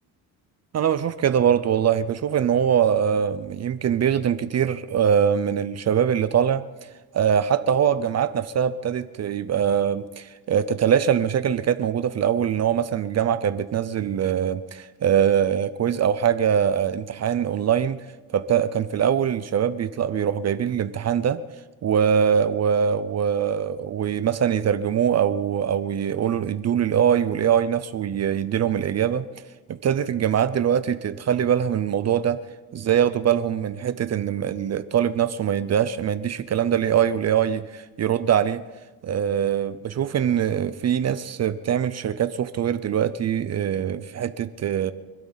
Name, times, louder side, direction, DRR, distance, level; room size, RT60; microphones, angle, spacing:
voice 1, 0.7-6.6 7.1-18.0 18.3-21.4 21.8-29.3 29.7-32.4 32.7-38.6 39.0-44.9, right 8 dB, 45° right, 13 dB, 0.6 m, -23 dB
25.5 x 12.5 x 4.1 m, 1.2 s
cardioid pair, 125°, 38 cm